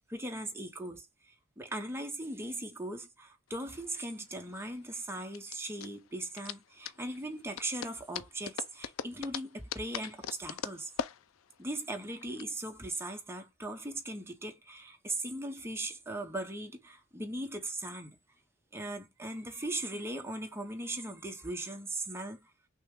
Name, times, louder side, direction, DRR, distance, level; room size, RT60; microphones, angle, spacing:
voice 1, 0.1-10.9 11.6-18.2 18.7-22.5, right 1 dB, 10° right, 0.9 m, -39 dB
sound 1, 3.5-12.4, left 8 dB, 80° left, 0.4 m, -42 dB
6.2 x 2.3 x 3.7 m
head